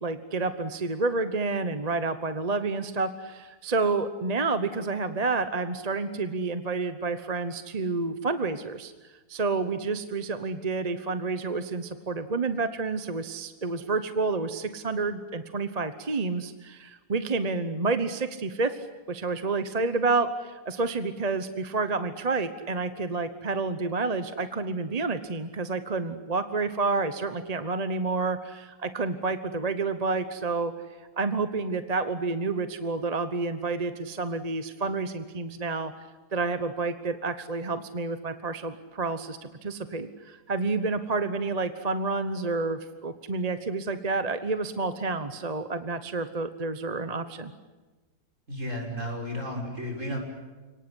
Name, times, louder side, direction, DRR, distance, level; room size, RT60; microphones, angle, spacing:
voice 1, 0.0-8.9 9.3-18.8 19.1-30.7 31.2-35.9 36.3-47.5, right 3 dB, 30° right, 10 dB, 1.0 m, -29 dB
voice 2, 48.5-50.2, equal, 50° right, 2 dB, 6.3 m, -33 dB
29.5 x 19.0 x 10.0 m, 1.3 s
omnidirectional pair, 1.6 m